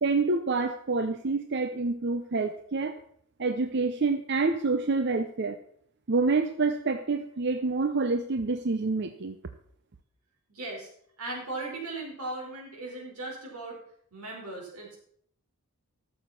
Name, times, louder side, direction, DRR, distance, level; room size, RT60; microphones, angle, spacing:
voice 1, 0.0-3.0 3.4-5.6 6.1-9.4, right 3 dB, 50° right, 8 dB, 0.6 m, -27 dB
voice 2, 10.5-10.9 11.2-13.8 14.1-15.0, right 2 dB, 90° right, -1 dB, 4.5 m, -37 dB
12.5 x 7.2 x 5.8 m, 0.65 s
head